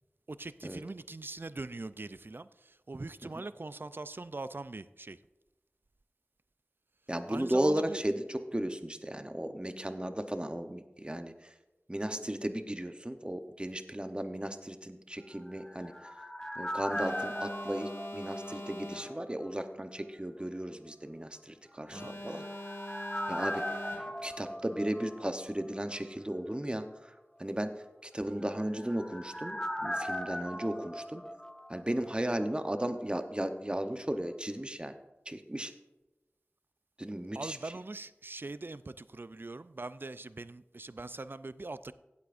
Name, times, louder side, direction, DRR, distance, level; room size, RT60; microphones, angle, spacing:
voice 1, 0.3-5.2 7.3-8.0 21.9-22.1 37.3-41.9, right 2 dB, 50° right, 14 dB, 0.4 m, -42 dB
voice 2, 7.1-11.3 11.9-15.9 16.6-22.4 23.3-23.8 24.2-26.9 27.4-27.7 28.0-31.2 31.7-34.9 35.3-35.7 37.0-37.6, right 1 dB, 20° right, 8 dB, 0.8 m, -35 dB
sound 1, 15.3-19.2 19.4-19.5 21.9-25.7 25.9-26.0 28.3-32.1 32.4-32.5, equal, 15° left, 0.9 m, -39 dB
Alarm, 16.9-19.4 21.9-24.4, left 1 dB, 85° left, 1.6 m, -44 dB
16.0 x 8.4 x 2.5 m, 1.0 s
wide cardioid pair, 50°, 5 cm